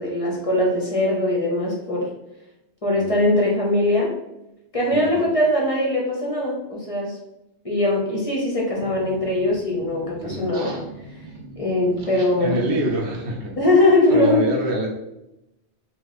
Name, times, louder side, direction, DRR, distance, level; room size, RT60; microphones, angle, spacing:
voice 1, 0.0-2.1 2.8-4.1 4.7-7.2 7.6-10.7 11.6-12.7 13.6-14.5, left 1 dB, 35° left, -3 dB, 0.7 m, -21 dB
voice 2, 2.9-3.3 4.9-5.3 10.2-10.5 12.4-13.5 14.1-14.9, right 1 dB, 70° right, -1 dB, 1.1 m, -26 dB
sound 1, 8.7-13.8, right 2 dB, 50° right, 0.7 m, -39 dB
2.9 x 2.4 x 4.0 m, 0.90 s
omnidirectional pair, 1.2 m